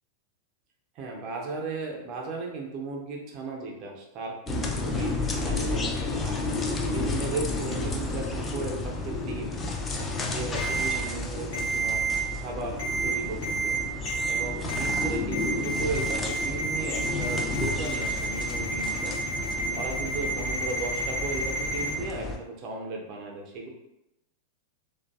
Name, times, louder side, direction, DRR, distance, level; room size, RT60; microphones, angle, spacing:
voice 1, 1.0-5.1 5.5-6.4 6.9-9.6 10.3-12.0 12.4-12.8 13.0-13.8 14.2-19.2 19.7-23.7, right 3 dB, 40° right, 0 dB, 0.5 m, -36 dB
sound 1, 4.5-22.4, left 3 dB, 20° left, 0.3 m, -32 dB
Ringtone, 10.5-10.9 11.5-12.2 12.8-13.1 13.4-13.8 14.1-14.4 14.7-15.0 15.3-21.9, right 3 dB, 60° left, 0.9 m, -30 dB
2.5 x 2.3 x 2.2 m, 0.88 s
figure-of-eight pair, 90°, 0 cm